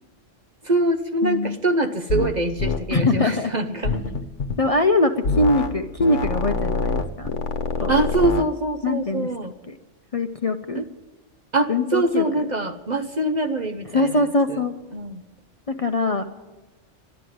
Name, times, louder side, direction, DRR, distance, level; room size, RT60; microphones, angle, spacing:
voice 1, 0.6-4.0 7.9-9.5 10.7-10.8 11.5-14.6 14.9-15.2, right 2 dB, 40° right, 7 dB, 0.8 m, -24 dB
voice 2, 1.2-1.6 2.9-3.5 3.9-4.0 4.6-7.3 7.8-8.0 8.8-9.3 9.7-9.8 10.1-10.8 11.7-12.5 13.9-14.7 15.7-16.2, left 2 dB, 35° left, 6 dB, 0.7 m, -22 dB
sound 1, 2.1-2.3 2.6-2.8 3.8-4.6 5.2-5.7 6.0-8.5, left 4 dB, 75° left, 1.3 m, -25 dB
13.0 x 11.5 x 9.3 m, 1.2 s
omnidirectional pair, 1.2 m